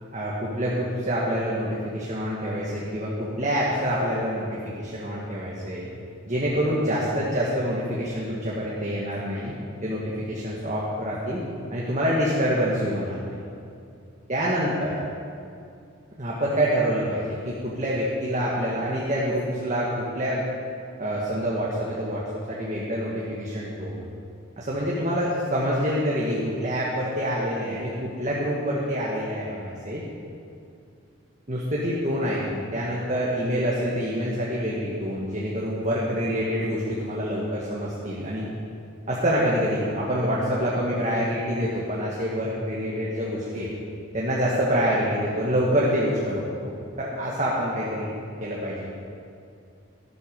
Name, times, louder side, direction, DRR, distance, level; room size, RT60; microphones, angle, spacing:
voice 1, 0.1-5.9 6.3-9.5 9.8-11.4 11.7-13.4 14.3-14.9 16.2-20.4 21.0-24.1 24.6-30.0 31.5-38.5 39.1-43.7 44.1-48.1 48.4-48.9, equal, 35° right, -5 dB, 1.6 m, -26 dB
13.0 x 12.5 x 5.2 m, 2.5 s
head